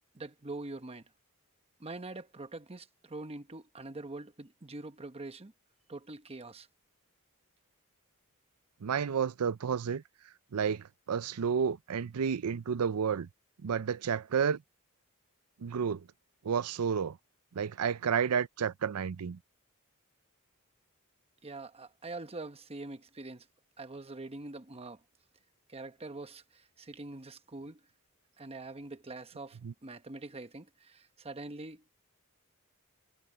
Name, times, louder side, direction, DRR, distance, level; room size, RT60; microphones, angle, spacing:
voice 1, 0.1-1.0 1.8-5.5 5.9-6.7 21.4-23.5 23.8-25.0 25.7-27.8 28.4-31.8, right 2 dB, 25° right, 1.0 m, -44 dB
voice 2, 8.8-10.0 10.5-13.3 13.6-14.6 15.6-16.1 16.4-17.2 17.5-19.4 29.6-29.7, right 7 dB, 85° right, 0.5 m, -31 dB
head